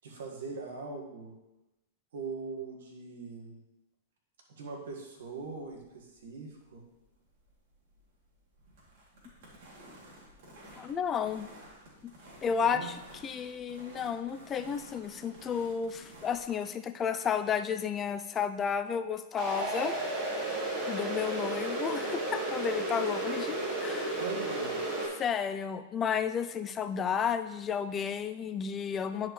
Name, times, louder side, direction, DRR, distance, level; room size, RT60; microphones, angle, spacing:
voice 1, 0.0-1.3 2.1-3.6 4.5-6.8 12.6-12.9 24.2-24.8, right 4 dB, 75° right, 1 dB, 1.8 m, -41 dB
sound 1, 5.2-16.6, right 1 dB, 55° right, 2.8 m, -53 dB
voice 2, 10.8-11.5 12.4-13.0 13.2-20.0 20.9-24.2 25.1-29.3, left 7 dB, 25° left, 10 dB, 0.4 m, -32 dB
sound 2, 19.4-25.1, right 1 dB, 25° right, 2.2 m, -33 dB
10.5 x 4.6 x 3.2 m, 0.98 s
hypercardioid pair, 120°, 0 cm